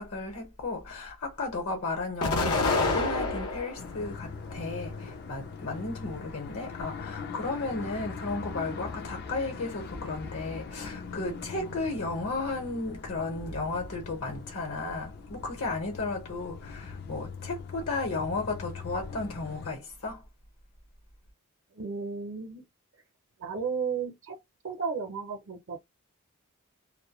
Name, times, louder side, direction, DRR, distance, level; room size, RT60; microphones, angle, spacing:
voice 1, 0.0-20.2, left 3 dB, 70° left, 1.0 m, -34 dB
Explosion, 2.2-3.9 4.4-5.3, left 3 dB, 85° left, 0.8 m, -28 dB
sound 1, 3.8-19.7, left 5 dB, 45° left, 0.4 m, -41 dB
voice 2, 21.7-22.6 23.4-24.4 24.6-25.8, right 5 dB, 60° right, 0.6 m, -33 dB
2.2 x 2.1 x 2.9 m
head